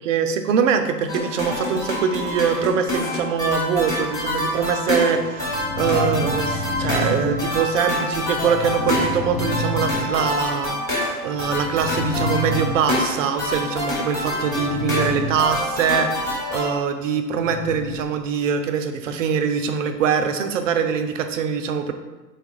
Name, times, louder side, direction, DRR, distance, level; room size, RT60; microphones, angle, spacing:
voice 1, 0.0-10.8 11.2-21.9, right 6 dB, 55° right, 8 dB, 0.5 m, -23 dB
sound 1, 1.1-16.8, left 1 dB, 5° left, 1.0 m, -27 dB
sound 2, 5.1-7.9 8.3-10.5 11.3-13.1 14.4-15.3 15.7-15.8 17.4-18.1, left 1 dB, 40° left, 0.4 m, -29 dB
4.4 x 2.3 x 3.0 m, 1.2 s
figure-of-eight pair, 110°, 48 cm